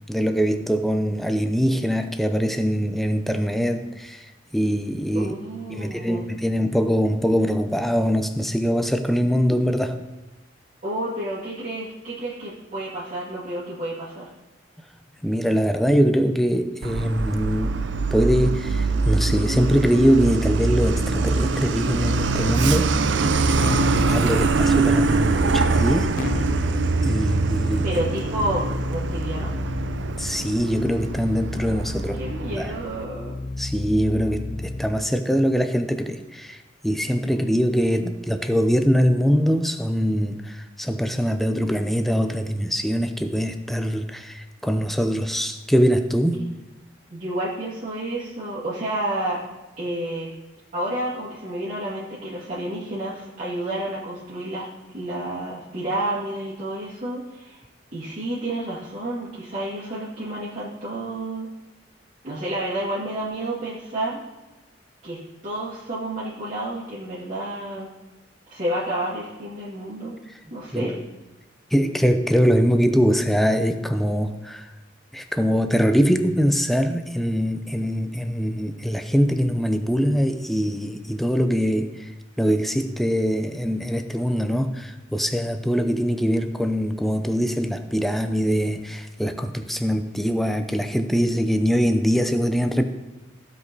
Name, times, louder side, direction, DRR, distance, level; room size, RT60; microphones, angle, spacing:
voice 1, 0.1-4.3 4.5-5.3 5.7-10.0 15.2-17.7 18.1-22.9 23.9-26.1 27.0-27.9 30.2-32.2 32.5-32.7 33.6-36.6 36.8-46.4 70.7-70.9 71.7-74.7 75.1-82.1 82.4-92.8, equal, ahead, 7 dB, 0.6 m, -22 dB
voice 2, 5.1-6.2 10.8-14.3 27.8-29.7 32.2-33.4 46.4-46.6 47.1-49.4 49.8-50.3 50.7-57.6 57.9-61.5 62.2-64.2 65.0-65.2 65.4-67.9 68.5-70.1 70.5-71.0, right 1 dB, 40° right, -10 dB, 2.2 m, -30 dB
Truck, 16.8-33.0, right 3 dB, 75° right, 0.5 m, -23 dB
Keyboard (musical), 23.6-24.2 26.2-35.1, left 2 dB, 45° left, 0.4 m, -31 dB
15.5 x 5.4 x 4.0 m, 1.1 s
head